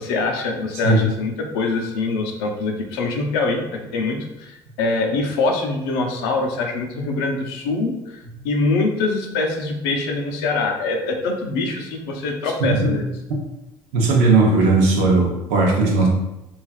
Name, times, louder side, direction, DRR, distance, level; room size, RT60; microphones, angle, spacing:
voice 1, 0.0-3.6 3.9-13.1, left 3 dB, 90° left, 2 dB, 0.5 m, -24 dB
voice 2, 12.6-13.0 13.9-16.1, right 3 dB, 80° right, -1 dB, 0.7 m, -17 dB
3.2 x 2.3 x 2.3 m, 0.93 s
supercardioid pair, 80°, 12 cm